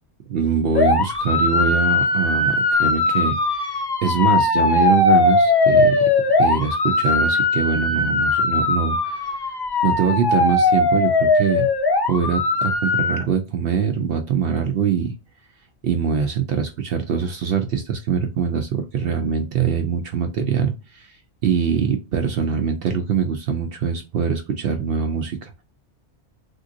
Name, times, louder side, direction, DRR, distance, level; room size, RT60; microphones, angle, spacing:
voice 1, 0.3-6.0 6.4-9.4 9.8-11.7 12.1-15.1 15.8-25.6, right 6 dB, 65° right, 5 dB, 0.7 m, -23 dB
sound 1, 0.7-13.2, left 3 dB, 35° left, 0.4 m, -19 dB
3.4 x 2.6 x 2.6 m, 0.28 s
omnidirectional pair, 1.2 m